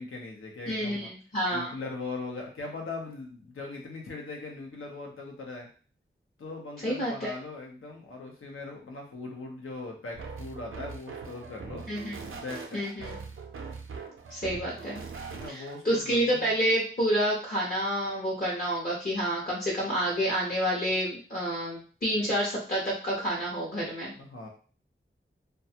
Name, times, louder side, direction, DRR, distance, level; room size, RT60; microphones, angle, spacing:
voice 1, 0.0-1.1 1.5-5.7 6.4-11.8 12.3-12.8 15.3-16.5 24.1-24.5, left 3 dB, 85° left, 0 dB, 0.7 m, -40 dB
voice 2, 0.7-1.7 6.8-7.3 11.9-12.1 12.7-13.2 14.3-15.0 15.5-24.2, equal, 45° left, -4 dB, 0.8 m, -29 dB
sound 1, 10.1-15.8, right 5 dB, 90° right, 0.4 m, -41 dB
2.3 x 2.3 x 2.7 m, 0.39 s
wide cardioid pair, 70°, 21 cm